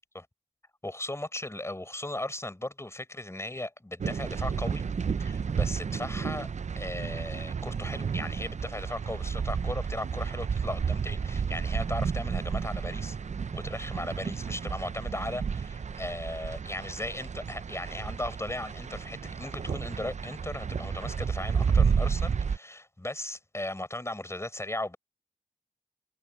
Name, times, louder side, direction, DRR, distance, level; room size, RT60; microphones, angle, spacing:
voice 1, 0.8-4.8 5.2-6.5 6.8-13.2 13.5-25.0, left 1 dB, 20° left, 5.2 m, -37 dB
sound 1, 4.0-22.6, right 6 dB, 55° right, 0.4 m, -31 dB
wide cardioid pair, 95°, 14 cm